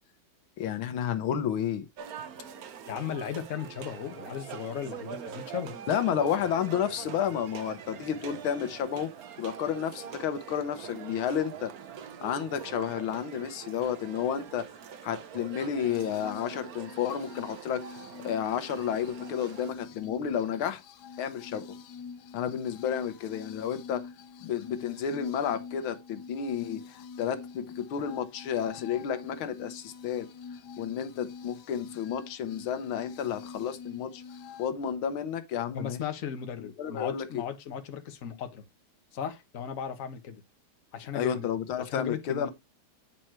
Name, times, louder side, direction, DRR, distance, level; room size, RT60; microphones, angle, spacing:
voice 1, 0.6-1.9 5.9-9.1 9.4-11.7 12.2-14.7 15.0-17.8 18.2-20.8 21.2-21.6 22.3-24.1 24.4-30.3 30.8-34.2 34.6-36.0 36.6-37.4 41.1-42.5, left 8 dB, 85° left, 1.7 m, -31 dB
sound 1, 2.0-19.7, right 8 dB, 55° right, 1.1 m, -44 dB
voice 2, 2.9-5.8 35.7-38.6 39.1-40.4 40.9-41.5 41.8-42.5, left 8 dB, 45° left, 1.4 m, -36 dB
sound 2, 15.8-34.7, left 5 dB, 65° left, 1.1 m, -46 dB
9.1 x 4.4 x 4.5 m
omnidirectional pair, 2.2 m